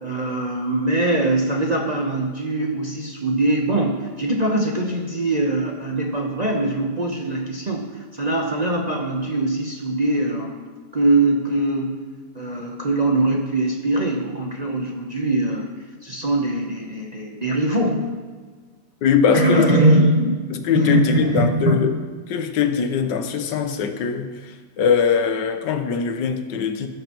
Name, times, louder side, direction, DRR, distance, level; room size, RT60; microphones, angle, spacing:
voice 1, 0.0-12.0 12.3-15.7 16.0-18.1 19.3-20.4 20.7-21.8, right 2 dB, 35° right, 0 dB, 0.7 m, -22 dB
voice 2, 19.0-19.8 20.5-22.0 22.3-26.9, left 7 dB, 90° left, 8 dB, 1.4 m, -21 dB
17.5 x 6.6 x 3.0 m, 1.5 s
omnidirectional pair, 1.9 m